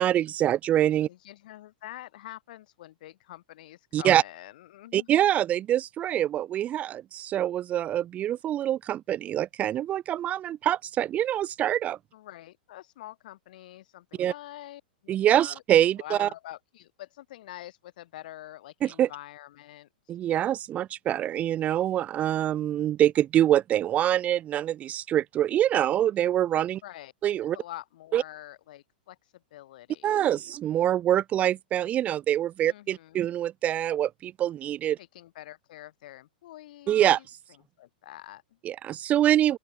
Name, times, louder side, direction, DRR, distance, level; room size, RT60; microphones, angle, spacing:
voice 1, 0.0-1.1 3.9-4.2 4.9-12.0 14.2-14.3 15.1-16.3 18.8-19.1 20.1-26.8 27.2-27.6 28.1-28.2 30.0-35.0 36.9-37.2 38.6-39.6, right 11 dB, 30° right, 0.6 m, -25 dB
voice 2, 1.1-5.2 12.1-15.6 16.0-19.9 26.8-27.1 27.5-30.6 32.6-33.2 35.0-37.3 37.8-38.6, left 14 dB, 60° left, 6.9 m, -46 dB
open air
hypercardioid pair, 110°, 5 cm